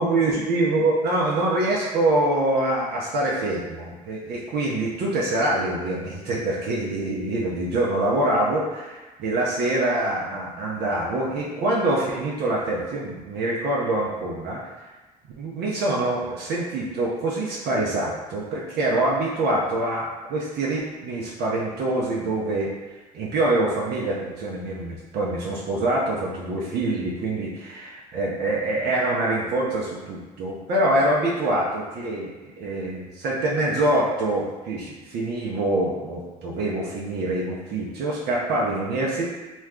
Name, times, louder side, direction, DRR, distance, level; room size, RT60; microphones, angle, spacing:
voice 1, 0.0-14.6 15.4-22.7 23.1-32.3 32.6-39.2, right 2 dB, 55° right, -4 dB, 0.6 m, -25 dB
2.3 x 2.2 x 3.5 m, 1.2 s
hypercardioid pair, 60°, 20 cm